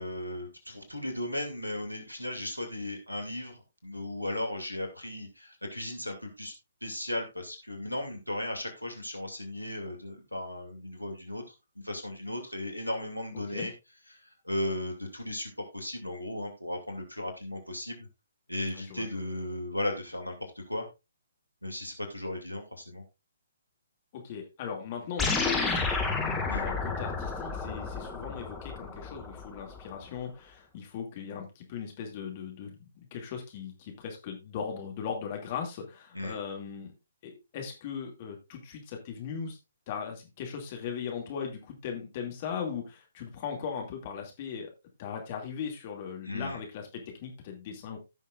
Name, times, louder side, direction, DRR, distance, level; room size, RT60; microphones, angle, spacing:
voice 1, 0.0-6.5 6.8-11.4 11.8-13.7 14.4-18.1 18.5-20.9 21.6-23.0 26.5-26.7 36.1-36.4 46.2-46.6, left 1 dB, 90° left, 3 dB, 2.6 m, -36 dB
voice 2, 18.7-19.1 24.1-25.9 26.5-36.9 37.2-39.6 39.9-44.7 45.0-48.0, left 7 dB, 35° left, 2 dB, 2.4 m, -38 dB
sound 1, 25.2-29.8, left 4 dB, 5° left, 1.8 m, -31 dB
16.0 x 6.4 x 2.5 m, 0.25 s
figure-of-eight pair, 130°, 0 cm